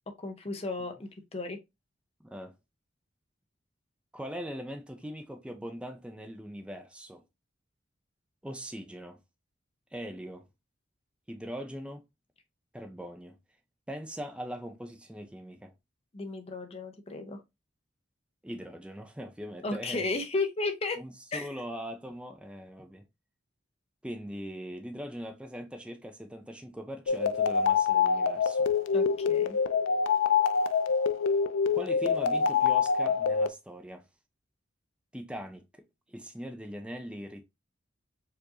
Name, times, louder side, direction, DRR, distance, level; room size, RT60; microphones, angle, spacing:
voice 1, 0.2-1.6 16.1-17.4 19.6-21.0 21.3-21.5 28.9-29.6, left 3 dB, 30° left, 0.7 m, -34 dB
voice 2, 2.2-2.5 4.1-7.2 8.4-9.2 9.9-10.5 11.3-12.0 12.7-13.4 13.9-15.7 18.4-20.1 21.0-23.0 24.0-28.7 31.7-34.0 35.1-37.4, equal, 5° right, 0.5 m, -41 dB
sound 1, 27.1-33.5, left 6 dB, 75° left, 0.3 m, -25 dB
4.6 x 2.5 x 2.8 m
head